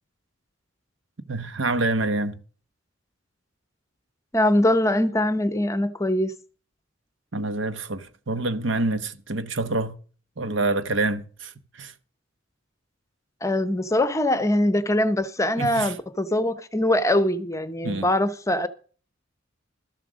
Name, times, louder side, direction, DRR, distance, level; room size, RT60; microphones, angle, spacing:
voice 1, 1.3-2.4 7.3-9.9 10.4-11.9 15.6-15.9 17.8-18.1, right 2 dB, 75° right, 1.1 m, -27 dB
voice 2, 4.3-6.3 13.4-18.7, left 1 dB, 15° left, 0.8 m, -22 dB
13.0 x 7.5 x 6.3 m
head